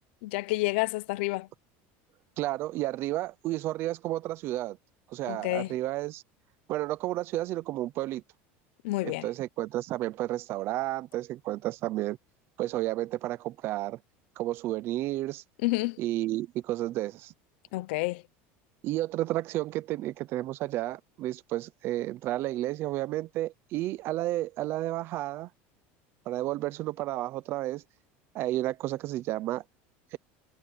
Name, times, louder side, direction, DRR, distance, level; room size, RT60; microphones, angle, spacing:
voice 1, 0.2-1.5 5.3-5.8 8.8-9.3 15.6-16.0 17.7-18.2, left 21 dB, 75° left, 0.9 m, -29 dB
voice 2, 2.4-4.8 5.1-6.2 6.7-8.2 9.0-12.2 12.6-14.0 14.4-15.4 16.0-17.3 18.8-25.5 26.3-27.8 28.3-29.6 30.1-30.2, right 15 dB, 40° right, 0.8 m, -31 dB
cardioid pair, 165°, 6 cm